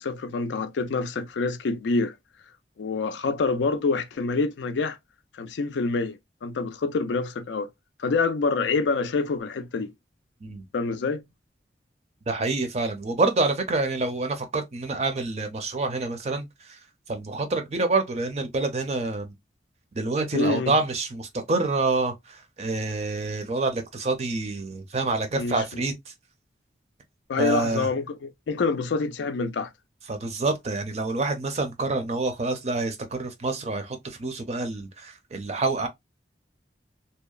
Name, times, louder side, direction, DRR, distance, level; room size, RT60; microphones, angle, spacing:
voice 1, 0.0-2.1 2.8-5.0 5.3-7.7 8.0-9.9 10.7-11.2 20.3-20.7 25.4-25.6 27.3-29.7, left 4 dB, 85° left, 0.4 m, -26 dB
voice 2, 12.3-16.8 17.1-19.3 19.9-26.1 27.4-27.9 30.1-35.9, right 3 dB, 35° right, 0.5 m, -27 dB
2.8 x 2.0 x 2.3 m
head